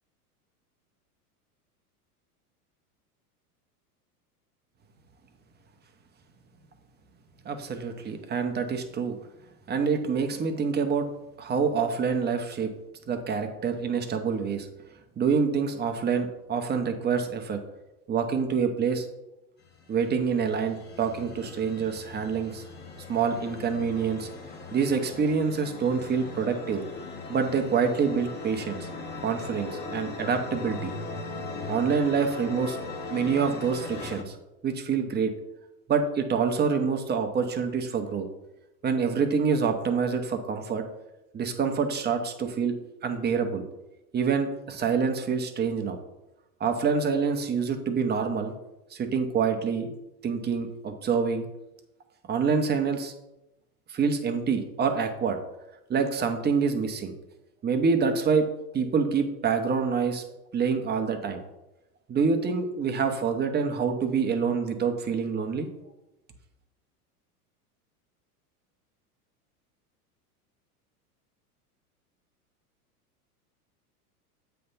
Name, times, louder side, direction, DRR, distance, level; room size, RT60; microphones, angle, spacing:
voice 1, 7.4-9.2 9.7-11.1 11.4-12.7 13.1-14.7 15.2-17.6 18.1-19.1 19.9-22.6 23.1-24.3 24.7-26.8 27.3-28.9 29.2-30.9 31.7-32.8 33.1-34.4 34.6-35.3 35.9-38.3 38.8-40.8 41.3-42.8 43.0-43.6 44.1-46.0 46.6-48.5 48.9-49.9 50.2-51.4 52.3-53.1 53.9-55.4 55.9-57.1 57.6-58.5 58.7-60.2 60.5-61.4 62.1-65.7, right 5 dB, 20° right, 6 dB, 0.9 m, -26 dB
sound 1, 19.6-34.2, left 3 dB, 20° left, 1.0 m, -39 dB
7.6 x 3.4 x 5.5 m, 0.96 s
hypercardioid pair, 100°, 46 cm